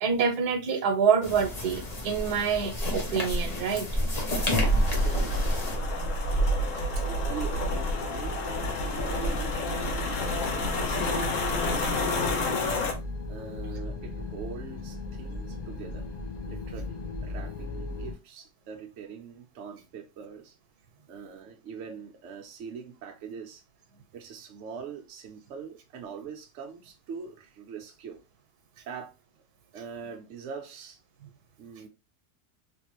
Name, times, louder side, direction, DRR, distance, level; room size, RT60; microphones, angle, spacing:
voice 1, 0.0-3.9, right 6 dB, 85° right, 1.3 m, -26 dB
sound 1, 1.2-5.8, left 1 dB, 35° left, 0.7 m, -31 dB
sound 2, 4.3-12.9, left 1 dB, 60° left, 1.0 m, -28 dB
voice 2, 4.9-6.1 7.1-12.2 12.4-12.6 13.3-16.1 16.5-20.5 20.9-23.6 24.1-28.2 28.9-29.1 29.7-31.0 31.6-31.9, right 6 dB, 60° right, 0.9 m, -43 dB
sound 3, 7.6-18.1, left 3 dB, 90° left, 0.3 m, -37 dB
3.3 x 2.6 x 2.9 m
omnidirectional pair, 1.6 m